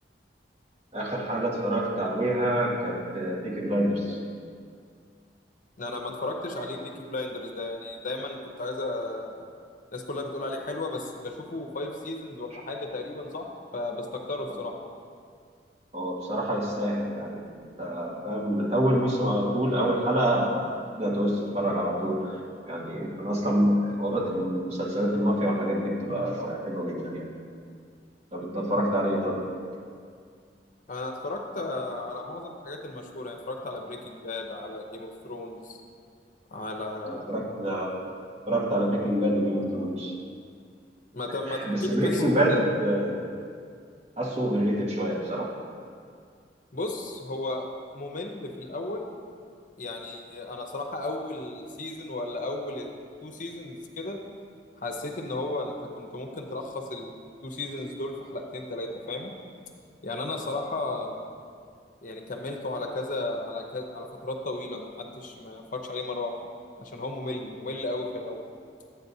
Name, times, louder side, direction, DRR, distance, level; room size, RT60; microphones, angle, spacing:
voice 1, 0.9-4.2 15.9-17.4 17.8-22.4 22.7-27.3 28.3-29.4 37.1-38.0 38.5-40.1 41.5-43.2 44.2-45.5, equal, 35° right, -4 dB, 1.5 m, -27 dB
voice 2, 5.8-9.5 9.9-14.7 30.9-35.8 36.5-37.3 41.1-42.7 46.7-47.7 47.9-49.1 49.8-52.9 53.2-54.2 54.8-59.3 60.0-61.2 62.0-66.5 66.8-68.4, left 2 dB, 45° left, 2 dB, 0.7 m, -34 dB
12.0 x 8.5 x 2.7 m, 2.2 s
head